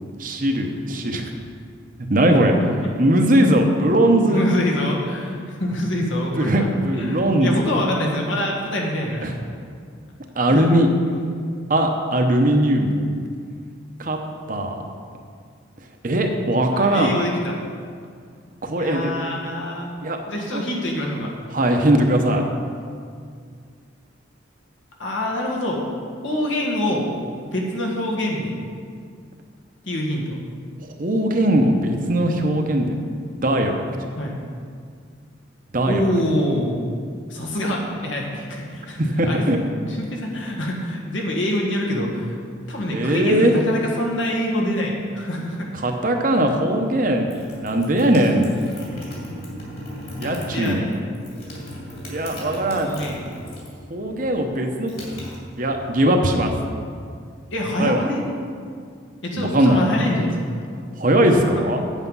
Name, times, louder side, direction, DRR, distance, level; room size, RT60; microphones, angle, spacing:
voice 1, 0.2-1.3 2.1-4.4 6.3-7.5 9.2-9.3 10.4-10.9 11.7-12.9 14.0-14.2 14.5-14.7 16.0-17.1 18.6-19.1 20.0-20.2 20.5-20.6 21.5-22.4 30.8-33.0 33.4-33.8 35.7-36.1 39.0-39.6 42.6-43.6 45.8-47.3 47.6-48.5 50.2-50.8 52.1-52.9 53.9-54.9 55.6-56.5 57.8-58.1 59.4-59.8 61.0-61.8, right 1 dB, 45° right, 4 dB, 0.8 m, -19 dB
voice 2, 4.3-6.7 6.9-9.3 10.5-10.7 11.2-11.3 16.7-17.6 18.8-19.9 20.3-21.3 25.0-25.8 26.2-27.1 27.5-28.6 29.8-30.4 34.2-34.4 35.9-36.8 37.3-39.0 39.3-42.4 42.7-45.9 50.2-51.3 52.8-53.2 57.5-58.2 59.2-60.5, left 1 dB, 80° left, -2 dB, 1.8 m, -25 dB
sound 1, 47.3-53.8 54.1-56.0, equal, 50° left, 2.9 m, -36 dB
8.2 x 8.1 x 5.5 m, 2.2 s
head